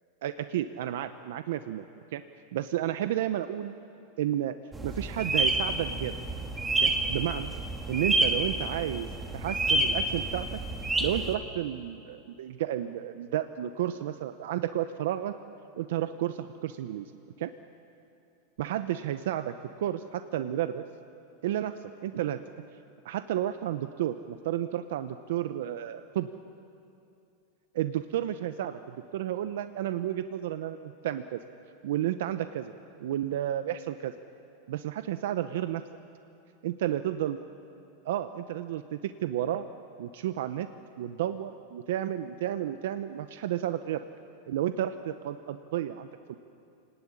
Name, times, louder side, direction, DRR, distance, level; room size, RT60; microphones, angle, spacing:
voice 1, 0.2-1.9 2.1-2.2 2.5-3.7 4.2-4.5 4.8-6.2 6.8-7.5 7.9-10.5 11.0-15.3 15.8-17.1 17.4-17.5 18.6-20.8 21.4-22.4 23.0-26.3 27.8-31.4 31.8-32.7 33.0-34.1 34.7-35.8 36.6-37.4 38.0-39.7 40.0-40.7 41.0-44.0 44.5-46.3, right 12 dB, 75° right, 10 dB, 0.9 m, -32 dB
sound 1, 4.7-11.3, right 2 dB, 10° right, 1.7 m, -29 dB
29.0 x 18.5 x 9.9 m, 2.7 s
supercardioid pair, 155°, 0 cm